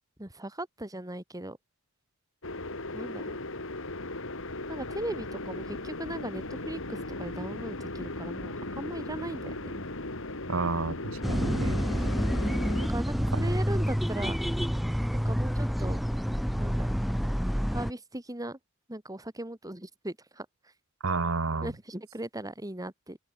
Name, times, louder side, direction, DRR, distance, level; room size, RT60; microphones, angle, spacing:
voice 1, 0.2-1.6 2.9-3.4 4.7-9.8 12.2-14.4 15.1-16.0 16.6-17.0 17.7-18.6 18.9-20.5 21.6-23.2, right 1 dB, 15° right, 2.7 m, -38 dB
sound 1, 2.4-12.9, left 2 dB, 65° left, 3.8 m, -37 dB
voice 2, 10.5-11.8 13.3-13.5 21.0-21.7, right 3 dB, 70° right, 1.3 m, -30 dB
sound 2, 11.2-17.9, equal, ahead, 0.6 m, -28 dB
open air
head